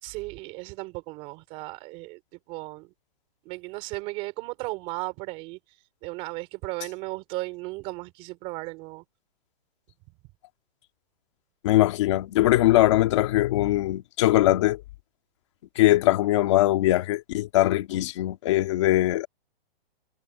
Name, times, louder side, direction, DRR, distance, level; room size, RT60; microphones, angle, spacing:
voice 1, 0.0-2.2 2.5-2.9 3.5-5.6 6.0-9.0, right 23 dB, 20° right, 4.0 m, -35 dB
voice 2, 11.6-14.8 15.8-19.3, left 15 dB, 30° left, 2.1 m, -21 dB
hypercardioid pair, 180°, 31 cm